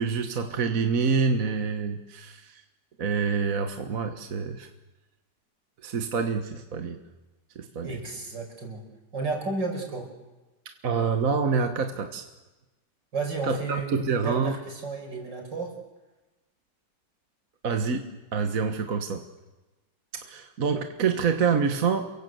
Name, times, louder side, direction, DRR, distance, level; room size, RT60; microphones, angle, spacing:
voice 1, 0.0-2.6 3.0-4.7 5.8-7.0 7.6-8.0 10.8-12.2 13.4-13.6 13.9-14.6 17.6-19.2 20.1-22.2, right 5 dB, 50° right, 6 dB, 1.8 m, -27 dB
voice 2, 7.8-8.8 9.1-10.1 13.1-15.7, right 3 dB, 75° right, 3 dB, 6.0 m, -32 dB
29.0 x 23.5 x 7.9 m, 1.1 s
omnidirectional pair, 1.9 m